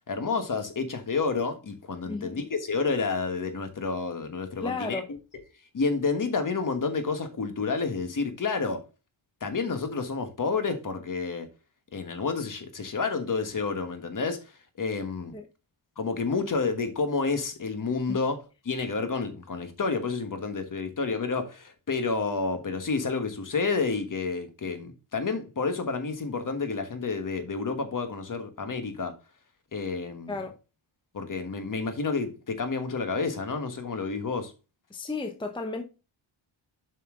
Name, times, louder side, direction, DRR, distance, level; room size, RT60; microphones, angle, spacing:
voice 1, 0.1-5.0 5.7-8.8 9.4-11.5 11.9-14.5 14.8-15.3 16.0-29.1 29.7-30.3 31.1-34.5, left 4 dB, 40° left, 1.4 m, -30 dB
voice 2, 2.1-2.4 4.6-5.1 15.3-15.5 18.1-18.2 30.3-30.6 34.9-35.8, left 3 dB, 10° left, 0.7 m, -33 dB
7.5 x 5.5 x 3.7 m
wide cardioid pair, 135°, 50 cm